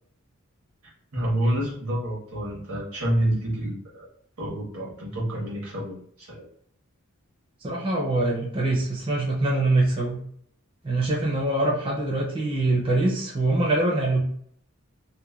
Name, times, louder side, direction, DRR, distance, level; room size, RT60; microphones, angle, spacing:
voice 1, 1.1-4.1 4.4-6.5, right 1 dB, 85° right, -4 dB, 1.1 m, -28 dB
voice 2, 7.6-10.2 10.8-14.2, right 2 dB, 25° right, -4 dB, 0.5 m, -24 dB
2.8 x 2.2 x 2.3 m, 0.63 s
head